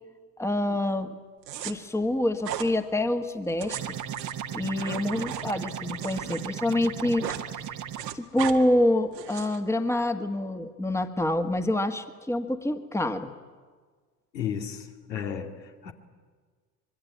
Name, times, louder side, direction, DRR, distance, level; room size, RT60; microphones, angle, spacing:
voice 1, 0.4-1.1 1.6-3.9 4.5-7.4 8.1-13.3, left 1 dB, 5° left, 8 dB, 1.7 m, -26 dB
sound 1, 1.4-1.7 2.4-2.7 3.4-6.4 6.7-7.5 7.7-8.6 9.1-9.6, right 11 dB, 80° right, 2.0 m, -37 dB
sound 2, 3.7-8.1, right 9 dB, 35° right, 1.4 m, -36 dB
voice 2, 14.3-15.9, left 8 dB, 80° left, 3 dB, 2.6 m, -34 dB
24.5 x 22.5 x 9.5 m, 1.5 s
hypercardioid pair, 75°, 50 cm